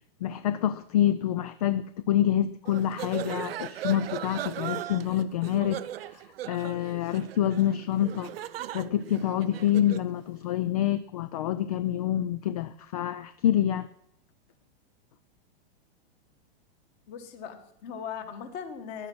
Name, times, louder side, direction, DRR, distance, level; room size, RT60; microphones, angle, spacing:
voice 1, 0.2-5.8 6.1-8.3 8.7-13.9, left 11 dB, 40° left, 14 dB, 0.5 m, -27 dB
sound 1, 2.6-10.1, right 12 dB, 80° right, 0.7 m, -38 dB
voice 2, 17.1-19.1, left 7 dB, 25° left, 9 dB, 1.3 m, -39 dB
15.5 x 10.5 x 6.1 m, 0.73 s
supercardioid pair, 180°, 29 cm